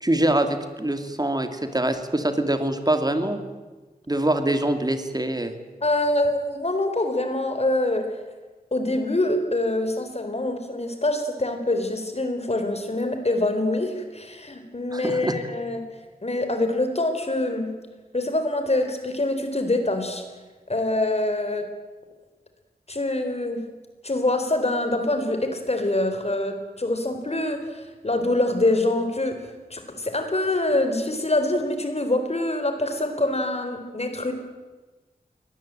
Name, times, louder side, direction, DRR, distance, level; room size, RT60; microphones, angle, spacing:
voice 1, 0.0-3.4 4.1-5.5 14.9-15.3, right 1 dB, 25° right, 7 dB, 2.8 m, -24 dB
voice 2, 5.8-8.0 8.7-15.8 16.2-17.7 18.1-20.2 20.7-21.7 22.9-23.6 24.0-34.3, left 2 dB, 40° left, 7 dB, 4.1 m, -25 dB
23.5 x 19.0 x 9.0 m, 1.3 s
wide cardioid pair, 75°, 16 cm